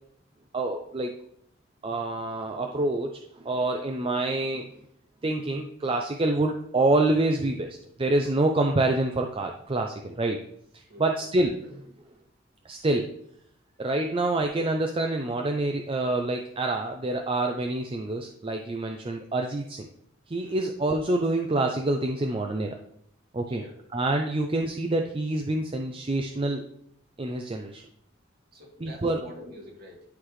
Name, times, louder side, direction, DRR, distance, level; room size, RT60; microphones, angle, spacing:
voice 1, 0.5-1.1 1.8-4.7 5.2-10.4 10.7-11.8 12.6-13.1 13.8-19.9 20.3-22.8 23.3-23.6 23.9-26.6 27.2-27.8 28.8-29.2, right 2 dB, 30° right, 3 dB, 0.5 m, -27 dB
voice 2, 28.5-30.0, equal, 50° right, -3 dB, 2.3 m, -46 dB
11.5 x 4.0 x 3.2 m, 0.71 s
head